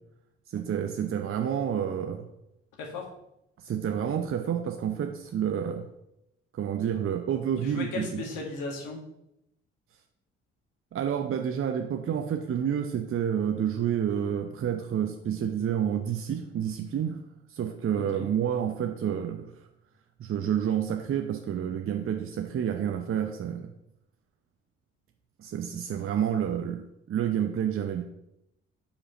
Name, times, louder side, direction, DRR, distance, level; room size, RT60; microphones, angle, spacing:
voice 1, 0.5-2.2 3.6-5.9 6.6-8.2 10.9-17.2 17.5-19.5 20.2-23.7 25.4-28.0, right 9 dB, 35° right, 5 dB, 0.8 m, -29 dB
voice 2, 2.8-3.1 7.6-9.0 18.0-18.3, left 3 dB, 60° left, 0 dB, 1.8 m, -36 dB
5.2 x 4.9 x 6.3 m, 0.83 s
figure-of-eight pair, 45°, 35 cm